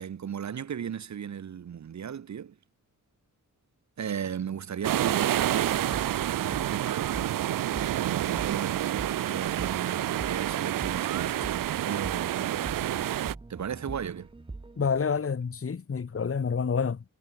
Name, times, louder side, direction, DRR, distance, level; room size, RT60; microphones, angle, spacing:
voice 1, 0.0-2.6 4.0-7.3 7.7-13.2 13.5-14.3, right 8 dB, 55° right, 0.9 m, -36 dB
sound 1, 4.8-13.4, right 13 dB, 75° right, 0.5 m, -28 dB
sound 2, 5.7-15.0, right 3 dB, 15° right, 0.8 m, -44 dB
voice 2, 14.8-17.0, left 6 dB, 40° left, 1.8 m, -28 dB
wide cardioid pair, 150°, 33 cm